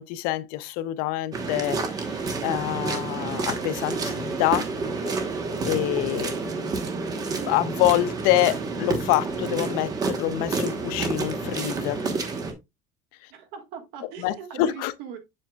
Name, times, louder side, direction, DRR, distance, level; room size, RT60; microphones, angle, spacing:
voice 1, 0.0-4.7 5.1-5.2 5.6-6.8 7.5-12.1 14.2-14.9, left 14 dB, 70° left, 0.6 m, -26 dB
sound 1, 1.3-12.5, right 4 dB, 25° right, 1.1 m, -29 dB
voice 2, 13.3-15.2, right 7 dB, 65° right, 1.6 m, -40 dB
7.6 x 6.5 x 2.3 m
cardioid pair, 175°, 16 cm